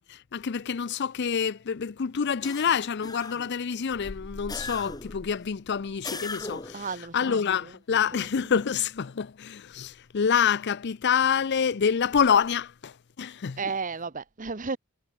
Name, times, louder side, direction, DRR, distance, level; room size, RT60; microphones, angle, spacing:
voice 1, 0.1-6.7 7.1-12.9 13.2-13.6, left 7 dB, 55° left, 0.5 m, -27 dB
sound 1, 2.4-3.6 4.5-5.2 6.0-6.9, left 3 dB, 20° left, 3.4 m, -38 dB
sound 2, 3.9-6.3, left 1 dB, 80° left, 1.6 m, -46 dB
voice 2, 6.7-8.2 13.6-14.8, right 4 dB, 40° right, 1.1 m, -34 dB
head